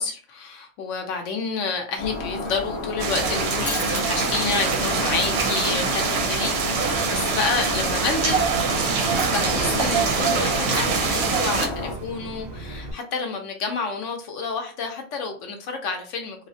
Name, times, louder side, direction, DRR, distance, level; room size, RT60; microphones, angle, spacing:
voice 1, 0.0-8.4 9.2-16.5, left 4 dB, 70° left, 1.0 m, -29 dB
Shatter, 2.0-11.9, left 2 dB, 35° left, 0.6 m, -31 dB
sound 1, 3.0-11.7, right 5 dB, 65° right, 0.7 m, -24 dB
Fire, 6.8-12.9, right 2 dB, 85° right, 0.3 m, -36 dB
3.1 x 2.1 x 2.6 m
omnidirectional pair, 1.4 m